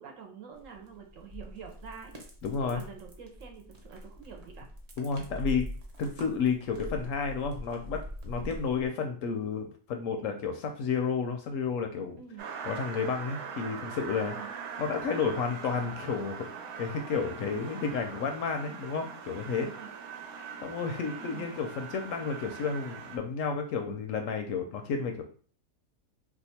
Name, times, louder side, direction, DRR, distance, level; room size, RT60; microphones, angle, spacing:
voice 1, 0.0-2.1 2.7-4.7 8.4-8.6 12.2-12.4 14.2-14.5 19.6-19.9 21.2-21.6, right 7 dB, 65° right, 3 dB, 1.0 m, -46 dB
sound 1, 0.5-8.9, equal, 45° right, 0.5 m, -43 dB
voice 2, 2.4-2.8 5.0-5.7 6.0-12.2 12.6-14.3 14.8-16.5 16.8-19.7 20.6-25.2, left 5 dB, 70° left, 5 dB, 0.8 m, -31 dB
sound 2, 12.4-23.2, right 6 dB, 90° right, 1.1 m, -42 dB
2.8 x 2.3 x 4.1 m, 0.42 s
omnidirectional pair, 1.5 m